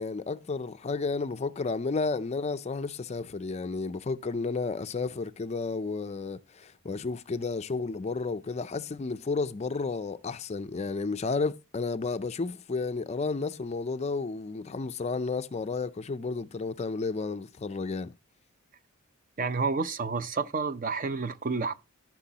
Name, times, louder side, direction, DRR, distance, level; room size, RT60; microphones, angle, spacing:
voice 1, 0.0-18.1, left 4 dB, 30° left, 0.4 m, -32 dB
voice 2, 19.4-21.7, right 4 dB, 40° right, 0.5 m, -30 dB
14.0 x 6.1 x 2.8 m
head